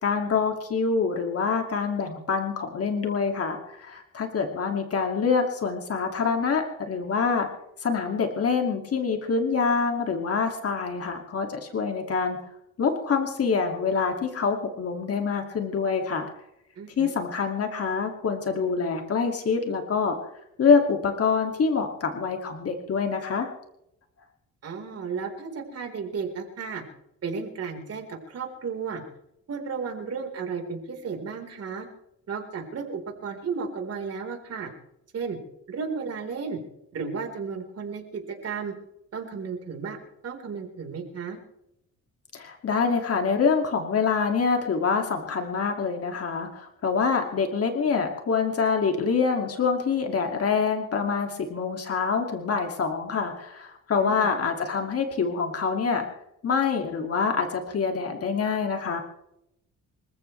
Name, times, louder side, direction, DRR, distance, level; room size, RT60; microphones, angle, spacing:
voice 1, 0.0-7.5 7.8-12.4 12.8-16.3 17.0-20.2 20.6-23.5 42.3-56.1 56.4-59.0, left 5 dB, 50° left, 4 dB, 2.5 m, -26 dB
voice 2, 16.8-17.1 24.6-26.8 27.2-29.0 29.5-31.9 32.3-34.7 35.1-35.4 35.7-36.6 36.9-38.7 39.1-40.0 40.2-41.4 54.0-54.3, right 5 dB, 55° right, 3 dB, 4.4 m, -33 dB
27.0 x 15.0 x 3.4 m, 0.83 s
cardioid pair, 90°, 30 cm